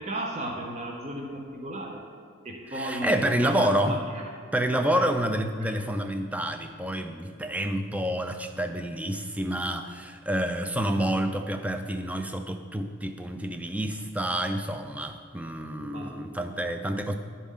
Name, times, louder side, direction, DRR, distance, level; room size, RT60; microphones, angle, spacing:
voice 1, 0.0-2.0 2.4-4.0 4.7-5.0 15.8-16.3, right 1 dB, 35° right, 0 dB, 0.7 m, -34 dB
voice 2, 2.7-4.0 4.5-17.1, right 1 dB, 5° right, 6 dB, 0.3 m, -28 dB
11.5 x 4.1 x 3.7 m, 2.1 s
head